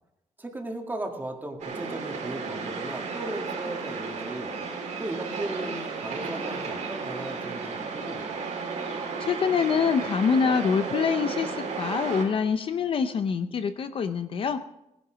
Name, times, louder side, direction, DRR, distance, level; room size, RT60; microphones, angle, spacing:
voice 1, 0.4-4.5 5.0-8.3, right 2 dB, 15° right, 3 dB, 1.8 m, -36 dB
sound 1, 1.6-12.2, right 4 dB, 80° right, 3.8 m, -33 dB
voice 2, 8.9-14.6, left 6 dB, 45° left, 10 dB, 0.6 m, -25 dB
18.5 x 10.5 x 5.1 m, 0.86 s
wide cardioid pair, 175°, 12 cm